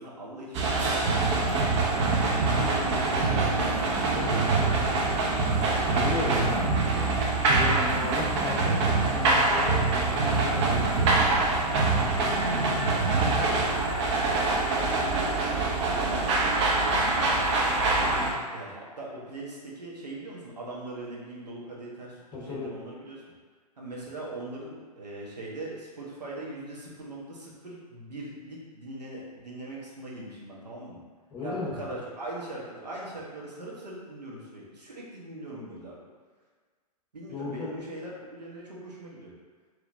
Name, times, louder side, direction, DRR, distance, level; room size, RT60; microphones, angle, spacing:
voice 1, 0.0-5.2 12.1-13.6 14.2-17.6 18.5-22.2 22.5-23.1 23.8-31.0 31.4-36.0 37.1-39.3, right 1 dB, 85° right, -4 dB, 1.1 m, -41 dB
sound 1, 0.5-18.3, right 3 dB, 45° right, 0.7 m, -24 dB
voice 2, 3.1-3.6 5.9-11.6 18.0-18.4 22.3-22.8 31.3-31.8 37.3-37.9, left 2 dB, 20° left, -5 dB, 1.0 m, -36 dB
4.1 x 3.0 x 2.6 m, 1.5 s
figure-of-eight pair, 110°, 21 cm